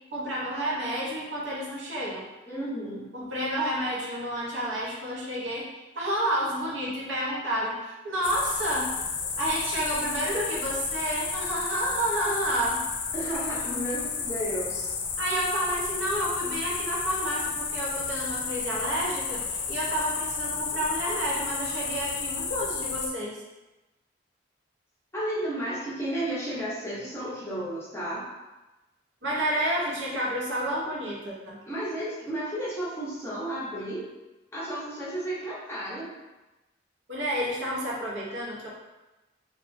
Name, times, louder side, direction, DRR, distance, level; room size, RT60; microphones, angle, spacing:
voice 1, 0.1-2.2 3.1-5.7 5.9-8.9 9.4-12.8 15.2-23.4 29.2-31.6 37.1-38.7, right 1 dB, 80° right, -5 dB, 0.7 m, -30 dB
voice 2, 2.4-3.1 13.1-14.9 25.1-28.3 31.7-34.1 34.5-36.1, right 1 dB, 15° left, -7 dB, 0.6 m, -33 dB
sound 1, 8.2-23.1, left 5 dB, 75° left, 0.4 m, -32 dB
2.8 x 2.3 x 2.5 m, 1.1 s
head